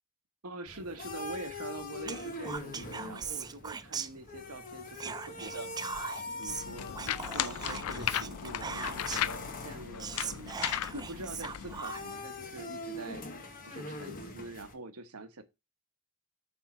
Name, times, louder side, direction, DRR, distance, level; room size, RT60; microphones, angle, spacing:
voice 1, 0.4-5.7 6.4-13.2 13.6-15.4, right 2 dB, 75° right, 1.1 m, -45 dB
sound 1, 0.7-14.7, left 2 dB, 40° left, 1.2 m, -43 dB
Whispering, 2.0-4.6 4.9-9.4 9.7-9.8 10.0-12.2, right 6 dB, 20° right, 0.3 m, -40 dB
sound 2, 6.5-11.8, left 10 dB, 70° left, 0.4 m, -36 dB
7.1 x 3.6 x 6.0 m
head